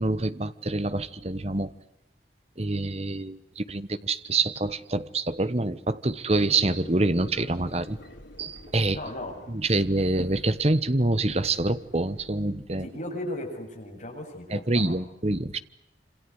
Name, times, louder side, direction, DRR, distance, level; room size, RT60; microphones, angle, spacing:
voice 1, 0.0-1.7 2.6-8.0 8.4-9.0 9.5-12.9 14.5-15.6, right 2 dB, 35° right, 13 dB, 1.2 m, -26 dB
sound 1, 6.3-12.6, left 1 dB, 85° left, 5.0 m, -49 dB
voice 2, 8.9-9.3 12.7-15.0, left 1 dB, 45° left, 2 dB, 7.9 m, -36 dB
27.5 x 26.5 x 8.2 m, 0.81 s
head